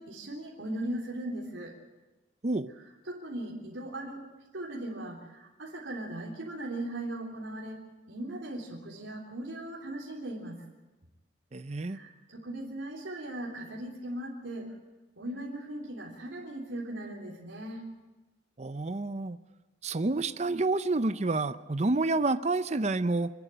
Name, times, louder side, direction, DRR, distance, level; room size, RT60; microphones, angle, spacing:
voice 1, 0.0-1.7 3.0-4.2 4.5-7.8 8.1-10.6 11.9-14.7 15.2-17.9, right 1 dB, 85° right, -3 dB, 3.4 m, -38 dB
voice 2, 11.5-12.0 18.6-19.4 19.8-23.3, right 2 dB, 35° right, 12 dB, 0.6 m, -29 dB
26.5 x 11.0 x 9.0 m, 1.1 s
head